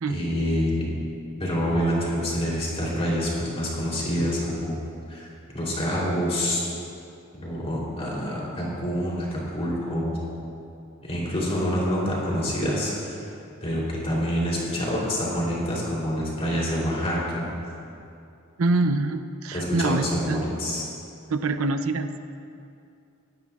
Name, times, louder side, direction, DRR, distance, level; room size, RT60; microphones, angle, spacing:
voice 1, 0.1-0.9 1.4-4.8 5.1-5.3 5.5-6.6 7.4-10.1 11.0-13.2 13.6-17.5 19.5-20.9, equal, 30° left, -5 dB, 3.3 m, -27 dB
voice 2, 18.6-20.5 21.3-22.2, right 3 dB, 85° right, 9 dB, 0.6 m, -25 dB
19.5 x 13.0 x 2.4 m, 2.5 s
head